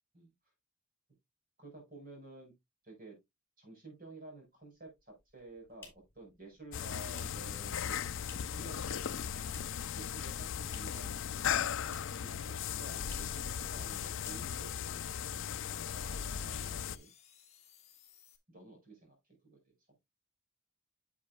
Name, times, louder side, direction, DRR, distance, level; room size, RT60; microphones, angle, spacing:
voice 1, 1.6-2.5 2.8-3.2 3.6-9.3 9.9-11.4 12.1-12.3 12.7-15.1 15.6-17.1 18.5-19.2 19.4-19.8, right 2 dB, 45° right, 3 dB, 5.2 m, -52 dB
sound 1, 4.7-18.4, left 6 dB, 30° left, 1.5 m, -63 dB
sound 2, 5.2-8.7 9.0-9.9 10.2-11.1 11.4-12.3 12.6-12.7 13.0-13.4 13.8-13.9 14.2-14.8, left 4 dB, 10° left, 3.6 m, -56 dB
sound 3, 6.7-17.0, left 8 dB, 65° left, 0.5 m, -37 dB
10.0 x 7.2 x 2.3 m, 0.20 s
head